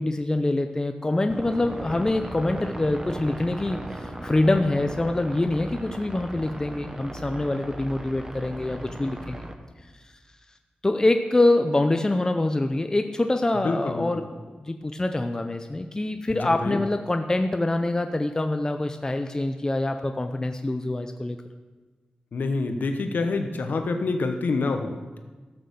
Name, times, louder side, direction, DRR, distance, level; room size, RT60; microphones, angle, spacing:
voice 1, 0.0-9.4 10.8-21.4, left 2 dB, 20° left, 6 dB, 0.6 m, -25 dB
sound 1, 1.3-9.5, right 1 dB, 20° right, 1.0 m, -37 dB
voice 2, 13.5-14.2 16.3-16.8 22.3-25.2, left 3 dB, 75° left, 6 dB, 0.9 m, -27 dB
13.0 x 6.4 x 7.0 m, 1.3 s
wide cardioid pair, 105°, 3 cm